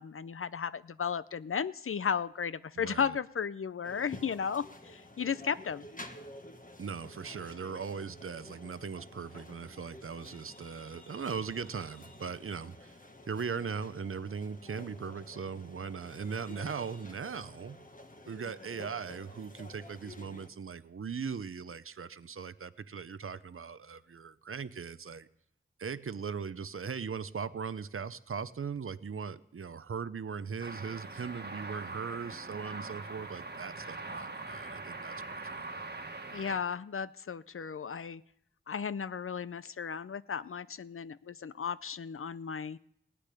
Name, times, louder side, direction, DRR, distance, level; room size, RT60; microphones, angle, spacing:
voice 1, 0.0-5.9 36.3-38.2 38.7-42.8, left 7 dB, 85° left, 16 dB, 0.5 m, -35 dB
voice 2, 2.8-3.1 6.8-13.0 13.3-17.8 18.3-25.3 25.8-35.6, right 6 dB, 85° right, 15 dB, 0.6 m, -39 dB
sound 1, 3.8-20.5, left 1 dB, 40° left, 1.5 m, -51 dB
sound 2, 30.6-36.6, right 3 dB, 50° right, 1.4 m, -42 dB
17.0 x 6.8 x 9.9 m, 0.72 s
wide cardioid pair, 60°, 21 cm